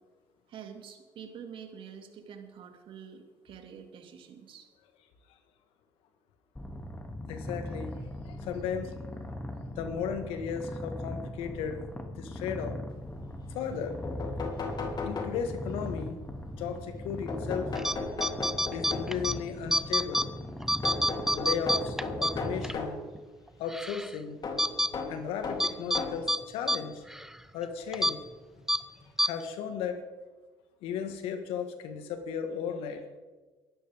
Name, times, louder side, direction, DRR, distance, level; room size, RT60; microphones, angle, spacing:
voice 1, 0.5-4.7, right 7 dB, 60° right, 5 dB, 2.4 m, -47 dB
Purr, 6.6-22.7, left 1 dB, 15° left, 2.5 m, -40 dB
voice 2, 7.3-8.0 8.2-8.9 9.7-11.9 12.2-12.8 13.5-14.0 15.0-16.2 16.6-17.7 18.7-20.3 21.3-23.0 23.6-24.4 25.1-27.0 27.5-28.2 29.2-30.0 30.8-33.1, left 7 dB, 70° left, 7 dB, 1.7 m, -35 dB
sound 1, 13.7-13.8 14.0-15.8 17.3-19.3 20.8-23.0 24.4-26.3 27.2-27.3 28.6-28.7 29.0-29.1, left 3 dB, 45° left, 3.4 m, -36 dB
sound 2, 17.8-17.9 18.2-19.3 19.7-20.3 20.6-22.8 23.1-23.2 23.7-24.1 24.6-24.9 25.6-26.0 26.3-26.4 26.7-26.8 27.1-27.3 27.9-28.1 28.7-28.8 29.2-29.3, equal, 5° right, 0.7 m, -27 dB
23.0 x 12.5 x 3.7 m, 1.3 s
hypercardioid pair, 60°, 10 cm